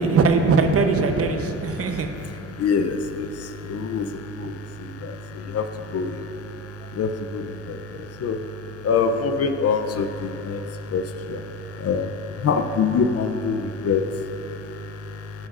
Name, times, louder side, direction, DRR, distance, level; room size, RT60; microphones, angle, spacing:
voice 1, 0.0-2.1 4.4-4.6, right 4 dB, 50° right, 6 dB, 0.9 m, -20 dB
voice 2, 2.6-6.3 6.8-8.4 8.8-15.5, left 5 dB, 55° left, 8 dB, 0.6 m, -26 dB
13.0 x 9.5 x 2.5 m, 2.9 s
cardioid pair, 90°, 30 cm